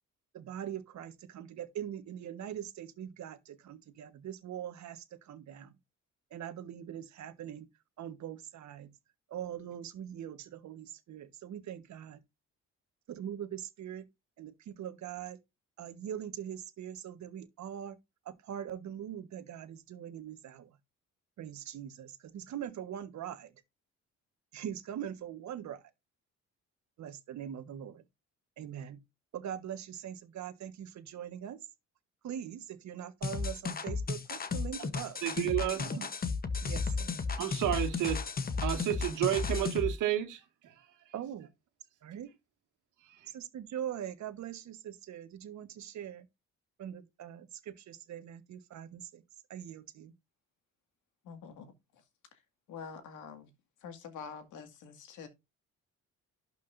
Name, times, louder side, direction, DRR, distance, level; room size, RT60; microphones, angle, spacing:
voice 1, 0.3-5.8 6.3-7.7 8.0-9.0 9.3-12.2 13.1-14.0 14.4-15.4 15.8-18.0 18.2-20.8 21.4-23.5 24.5-25.9 27.0-28.0 28.6-29.0 29.3-31.6 32.2-36.1 36.6-37.1 41.1-41.5 42.0-42.3 43.3-46.3 46.8-49.2 49.5-50.1, right 10 dB, 65° right, 1.4 m, -42 dB
sound 1, 33.2-39.9, left 4 dB, 30° left, 1.1 m, -34 dB
voice 2, 35.2-36.1 37.4-38.2 38.6-40.4, right 13 dB, 90° right, 2.2 m, -31 dB
voice 3, 51.2-52.0 52.3-52.4 52.7-53.5 53.8-55.3, left 6 dB, 85° left, 2.1 m, -46 dB
12.0 x 6.0 x 2.6 m
cardioid pair, 105°, 30 cm